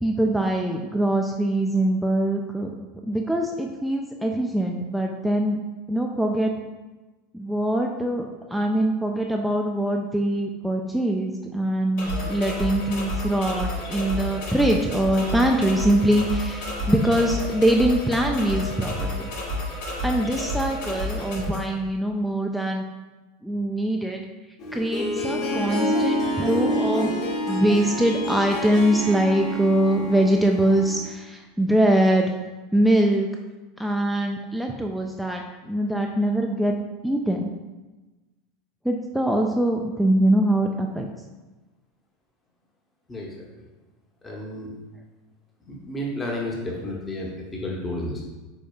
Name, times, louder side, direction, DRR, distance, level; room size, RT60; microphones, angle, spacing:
voice 1, 0.0-2.7 3.0-5.6 5.9-6.5 7.3-19.3 20.0-22.8 23.4-24.2 24.7-27.2 27.5-32.3 32.7-33.3 33.8-36.7 37.0-37.5 38.8-41.1, right 1 dB, ahead, 1 dB, 0.3 m, -23 dB
sound 1, 12.0-21.6, left 1 dB, 60° left, 1.3 m, -30 dB
Harp, 24.6-31.1, equal, 45° left, 1.1 m, -28 dB
voice 2, 43.1-43.7 44.2-44.7 45.7-48.2, left 1 dB, 20° left, -2 dB, 0.8 m, -32 dB
4.8 x 4.2 x 2.3 m, 1.2 s
figure-of-eight pair, 80°, 0 cm